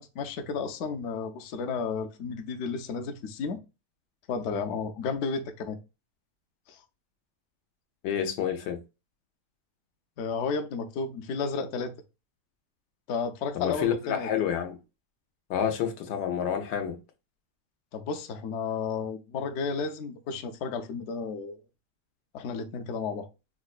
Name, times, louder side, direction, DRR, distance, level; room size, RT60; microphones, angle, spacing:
voice 1, 0.0-3.6 4.3-5.8 6.7-6.8 10.2-11.9 13.1-14.3 17.9-21.6 22.3-23.3, left 5 dB, 70° left, 0.6 m, -32 dB
voice 2, 8.0-8.8 13.5-14.8 15.5-17.0, left 8 dB, 85° left, 1.3 m, -29 dB
4.7 x 2.2 x 2.4 m
omnidirectional pair, 1.8 m